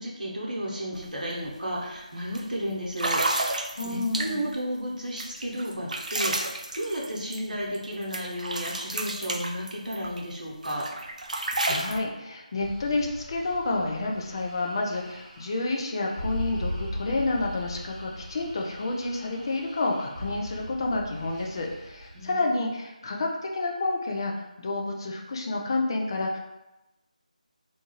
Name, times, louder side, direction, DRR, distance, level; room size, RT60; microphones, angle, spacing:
voice 1, 0.0-3.2 3.8-10.9 22.1-22.8, equal, 80° right, -4 dB, 0.8 m, -33 dB
sound 1, 0.9-1.1 1.4-1.7 2.3-2.4 2.9-4.6 5.2-7.9 8.1-10.2 10.6-12.0, right 2 dB, 65° right, 0.3 m, -31 dB
voice 2, 3.8-4.4 11.3-24.3 24.6-26.4, left 2 dB, 35° left, 0 dB, 0.4 m, -29 dB
sound 2, 12.6-22.3, equal, 15° right, 0.6 m, -39 dB
2.7 x 2.2 x 3.0 m, 0.99 s
figure-of-eight pair, 160°, 4 cm